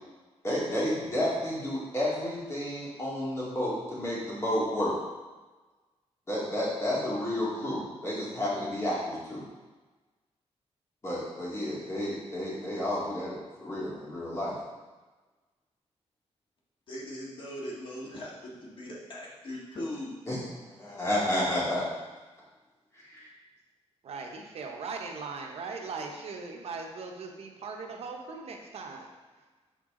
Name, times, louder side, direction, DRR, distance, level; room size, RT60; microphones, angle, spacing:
voice 1, 0.4-4.9 6.3-9.4 11.0-14.5 20.3-21.9 23.1-23.3, left 1 dB, 25° left, -7 dB, 2.2 m, -31 dB
voice 2, 16.9-20.2, left 1 dB, 50° left, -4 dB, 1.6 m, -39 dB
voice 3, 24.0-29.1, right 4 dB, 65° right, 2 dB, 0.8 m, -39 dB
6.7 x 4.7 x 3.7 m, 1.2 s
wide cardioid pair, 145°, 11 cm